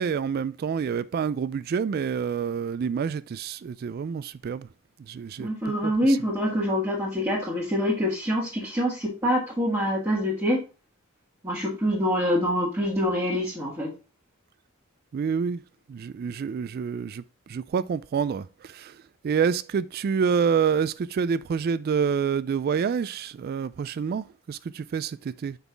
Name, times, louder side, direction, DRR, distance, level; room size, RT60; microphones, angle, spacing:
voice 1, 0.0-4.7 5.1-6.2 15.1-15.6 15.9-17.2 17.5-19.0 19.2-25.6, right 6 dB, 45° right, 0.3 m, -27 dB
voice 2, 5.4-10.6 11.4-13.9, equal, 15° right, 1.7 m, -25 dB
6.0 x 5.5 x 3.4 m
head